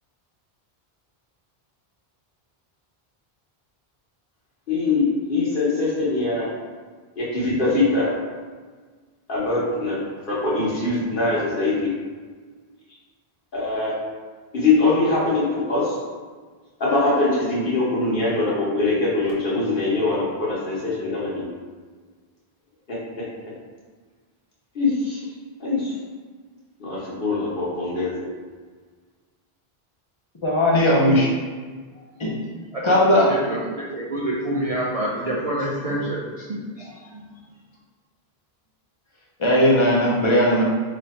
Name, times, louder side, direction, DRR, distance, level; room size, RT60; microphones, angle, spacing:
voice 1, 4.7-6.5 7.2-8.1 9.3-10.0 10.3-11.9 13.5-13.9 14.5-15.9 16.8-21.5 24.7-25.2 25.6-25.9 26.8-28.1, left 3 dB, 55° left, -7 dB, 1.3 m, -22 dB
voice 2, 30.4-31.3 32.2-32.3 32.8-33.3 39.4-40.6, left 1 dB, 30° left, -4 dB, 0.8 m, -17 dB
voice 3, 32.7-37.3, right 1 dB, 50° right, -5 dB, 0.5 m, -28 dB
3.2 x 2.6 x 4.3 m, 1.5 s
omnidirectional pair, 1.0 m